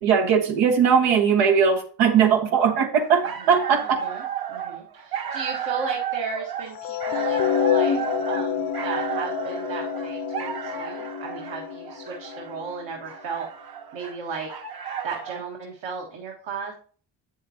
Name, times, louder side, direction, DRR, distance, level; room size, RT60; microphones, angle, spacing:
voice 1, 0.0-4.0, right 7 dB, 90° right, 3 dB, 1.4 m, -19 dB
sound 1, 3.0-15.5, right 8 dB, 50° right, 1.1 m, -33 dB
voice 2, 3.8-13.5 13.9-14.5 15.0-16.7, right 5 dB, 70° right, 0 dB, 1.6 m, -35 dB
sound 2, 6.8-13.0, left 8 dB, 50° left, 0.7 m, -27 dB
8.4 x 7.2 x 2.8 m, 0.43 s
supercardioid pair, 70°, 47 cm